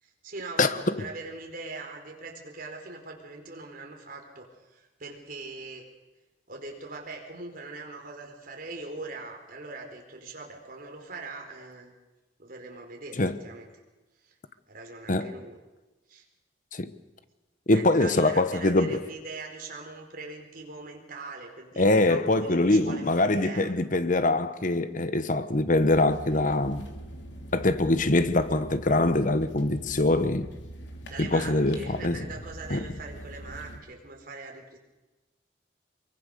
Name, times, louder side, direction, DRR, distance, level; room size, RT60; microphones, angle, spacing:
voice 1, 0.0-5.8 6.5-11.9 12.4-13.7 14.3-14.4 14.7-15.6 16.1-16.2 17.7-23.7 31.1-34.8, right 3 dB, 50° right, 4.5 m, -41 dB
voice 2, 17.7-19.0 21.8-26.9 27.5-30.5 31.2-32.2 32.7-32.8, left 2 dB, 45° left, 1.1 m, -23 dB
sound 1, 25.7-33.8, right 1 dB, 80° left, 3.0 m, -43 dB
24.5 x 23.5 x 6.7 m
head